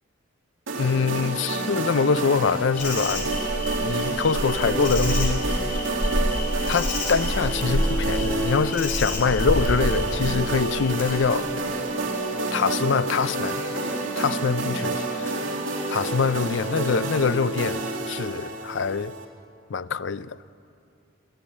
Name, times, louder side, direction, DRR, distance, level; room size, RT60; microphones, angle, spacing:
sound 1, 0.7-19.2, right 2 dB, 75° right, 2.5 m, -29 dB
voice 1, 0.8-3.3 3.8-5.4 6.7-11.5 12.5-15.4 15.9-19.1 19.7-20.4, left 5 dB, 60° left, 0.5 m, -24 dB
Insect, 2.8-11.2, left 1 dB, 45° left, 4.2 m, -28 dB
26.0 x 12.5 x 8.6 m
head